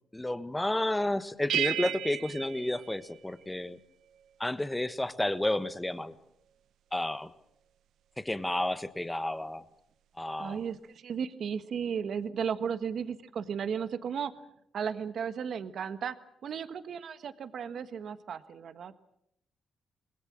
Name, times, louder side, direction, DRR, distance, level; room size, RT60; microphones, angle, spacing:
voice 1, 0.1-3.8 4.4-6.1 6.9-7.3 8.2-9.6 10.2-10.6, left 1 dB, 10° left, 12 dB, 1.3 m, -31 dB
sound 1, 1.5-3.7, right 11 dB, 80° right, 0.9 m, -34 dB
voice 2, 10.4-14.3 14.7-16.2 16.4-19.0, right 7 dB, 60° right, 11 dB, 1.4 m, -35 dB
26.0 x 20.5 x 7.5 m, 0.78 s
cardioid pair, 105°, 0 cm